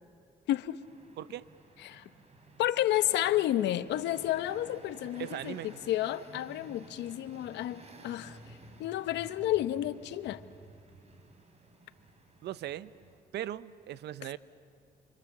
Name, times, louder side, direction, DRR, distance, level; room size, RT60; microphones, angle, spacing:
voice 1, 0.5-0.8 1.8-2.0 2.6-5.5 5.9-8.4 8.8-10.4, left 13 dB, 85° left, 14 dB, 0.8 m, -31 dB
sound 1, 0.8-13.2, right 2 dB, 40° right, 3.7 m, -54 dB
voice 2, 1.2-1.5 5.2-5.7 12.4-12.9 13.3-14.4, right 12 dB, 75° right, 17 dB, 0.7 m, -38 dB
28.0 x 24.5 x 7.2 m, 2.5 s
cardioid pair, 90°, 18 cm